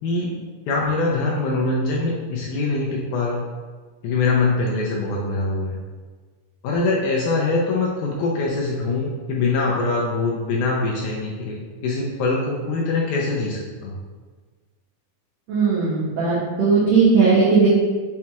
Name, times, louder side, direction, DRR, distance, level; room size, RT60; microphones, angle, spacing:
voice 1, 0.0-0.3 0.7-3.5 4.0-5.8 6.6-14.0, left 3 dB, 80° left, -3 dB, 1.8 m, -23 dB
voice 2, 15.5-17.7, right 4 dB, 90° right, -8 dB, 1.4 m, -17 dB
5.9 x 2.3 x 2.8 m, 1.4 s
omnidirectional pair, 3.9 m